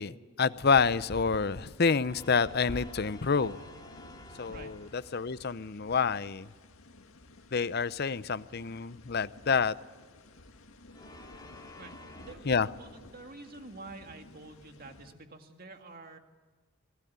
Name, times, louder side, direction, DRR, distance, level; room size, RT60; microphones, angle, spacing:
voice 1, 0.0-3.6 4.4-6.5 7.5-9.7 12.5-12.7, left 5 dB, 50° left, 16 dB, 0.6 m, -28 dB
sound 1, 0.5-15.1, left 1 dB, 85° left, 1.9 m, -51 dB
sound 2, 2.0-5.4 10.9-12.4, left 1 dB, 20° left, 2.3 m, -51 dB
voice 2, 12.2-16.2, right 3 dB, 45° right, 5 dB, 2.1 m, -48 dB
25.5 x 17.5 x 9.5 m, 1.4 s
head